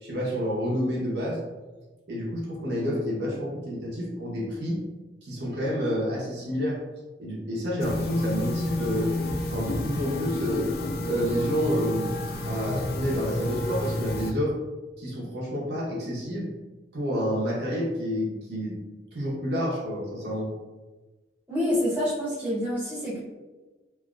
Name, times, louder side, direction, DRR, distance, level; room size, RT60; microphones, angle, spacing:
voice 1, 0.0-1.4 2.1-4.8 5.2-6.8 7.2-9.1 9.5-10.7 11.1-12.1 12.4-14.5 15.0-16.5 16.9-18.8 19.1-20.5, equal, 70° right, -5 dB, 0.9 m, -29 dB
sound 1, 7.8-14.3, left 1 dB, 55° left, 0.4 m, -30 dB
voice 2, 21.5-23.2, left 1 dB, 10° right, -9 dB, 1.1 m, -27 dB
3.3 x 2.7 x 2.5 m, 1.2 s
head